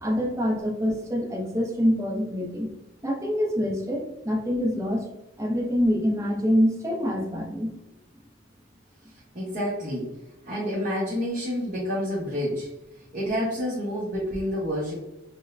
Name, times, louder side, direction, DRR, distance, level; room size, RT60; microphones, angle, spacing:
voice 1, 0.0-2.7 3.0-5.0 5.4-7.7, equal, 15° right, -1 dB, 0.6 m, -25 dB
voice 2, 9.3-10.1 10.4-12.7 13.1-14.9, equal, 40° right, -7 dB, 1.0 m, -28 dB
6.1 x 2.1 x 2.5 m, 0.93 s
head